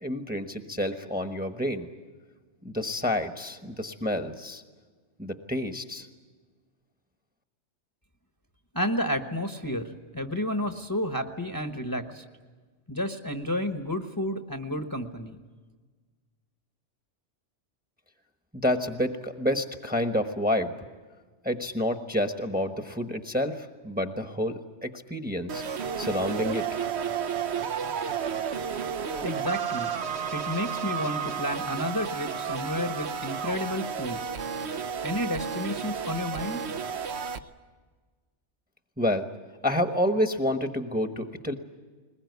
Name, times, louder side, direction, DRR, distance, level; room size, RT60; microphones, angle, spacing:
voice 1, 0.0-1.9 2.6-4.6 5.2-6.1 18.5-20.7 21.4-25.6 26.0-26.8 39.0-39.3 39.6-41.5, left 1 dB, 10° right, 7 dB, 1.1 m, -29 dB
voice 2, 8.7-12.2 12.9-15.4 29.2-29.9 30.3-34.2 35.0-36.6, left 1 dB, 20° left, 7 dB, 1.1 m, -31 dB
sound 1, 25.5-37.4, right 7 dB, 70° right, 1.2 m, -32 dB
21.0 x 20.5 x 9.4 m, 1.4 s
omnidirectional pair, 1.2 m